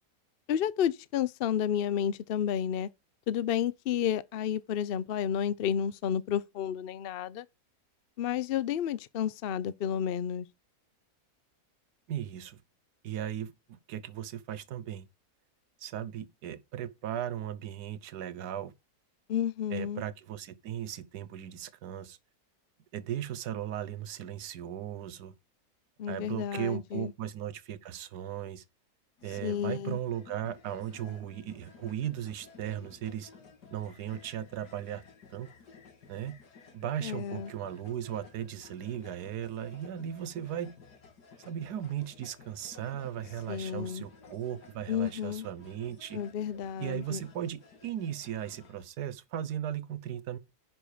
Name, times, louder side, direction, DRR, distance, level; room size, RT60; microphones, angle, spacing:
voice 1, 0.5-2.9 3.3-7.4 8.2-10.5 19.3-20.0 26.0-27.1 29.4-30.0 37.0-37.5 43.5-44.0 44.9-45.5 46.1-47.2, left 9 dB, 65° left, 0.5 m, -31 dB
voice 2, 12.1-12.6 13.0-13.5 13.9-15.1 15.8-18.7 19.7-22.2 22.9-25.3 26.1-28.6 29.2-33.3 33.7-35.0 35.3-35.5 36.1-36.4 36.7-40.7 41.4-46.2 46.8-50.4, right 10 dB, 80° right, 1.4 m, -37 dB
sound 1, 29.2-48.8, left 5 dB, 90° left, 2.4 m, -55 dB
10.5 x 5.4 x 5.0 m
omnidirectional pair, 1.7 m